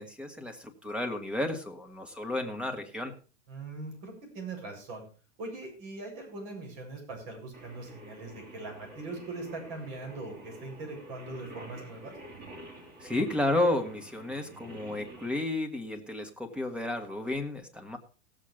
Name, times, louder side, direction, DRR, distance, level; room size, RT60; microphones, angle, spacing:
voice 1, 0.0-3.1 13.0-18.0, left 1 dB, 5° right, 7 dB, 1.7 m, -32 dB
voice 2, 3.5-5.0 5.4-12.2, right 3 dB, 50° right, 1 dB, 7.7 m, -41 dB
Singing, 7.5-15.3, right 1 dB, 25° right, 4.1 m, -48 dB
17.0 x 7.6 x 5.0 m, 0.36 s
supercardioid pair, 140°, 37 cm